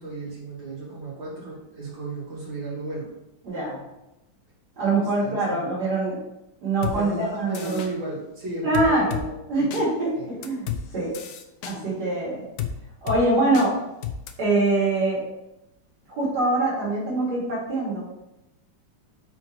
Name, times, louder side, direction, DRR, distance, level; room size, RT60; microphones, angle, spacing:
voice 1, 0.0-3.1 5.2-5.7 6.9-9.8 10.1-10.3, right 3 dB, 85° right, -8 dB, 3.3 m, -35 dB
voice 2, 3.4-3.8 4.8-6.2 6.6-7.8 8.6-9.2 9.5-10.6 10.9-11.1 11.6-12.4 13.0-13.8 14.4-15.2 16.1-18.0, right 2 dB, 60° right, -8 dB, 3.0 m, -24 dB
sound 1, 6.8-7.0 7.5-7.9 8.7-9.2 9.7-9.8 10.4-10.8 11.1-11.8 12.6-12.7 13.1-13.2 13.5-13.7 14.0-14.3, left 9 dB, 65° left, 1.1 m, -30 dB
6.1 x 4.6 x 4.6 m, 0.93 s
omnidirectional pair, 2.0 m